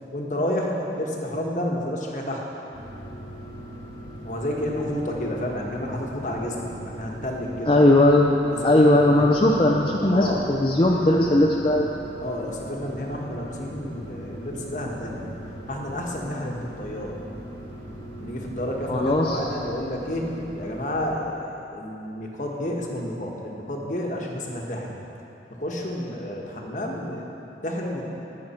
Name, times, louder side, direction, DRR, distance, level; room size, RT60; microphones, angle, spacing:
voice 1, 0.1-2.4 4.2-7.9 8.5-9.5 10.1-10.5 12.2-15.3 15.7-17.2 18.2-24.9 25.5-27.3 27.6-28.0, left 1 dB, 45° left, -1 dB, 1.3 m, -30 dB
sound 1, 2.7-21.1, equal, 85° right, 2.0 m, -40 dB
voice 2, 7.7-8.3 8.6-11.9 18.9-19.4, left 1 dB, 30° left, -2 dB, 0.6 m, -18 dB
18.5 x 6.5 x 4.4 m, 3.0 s
head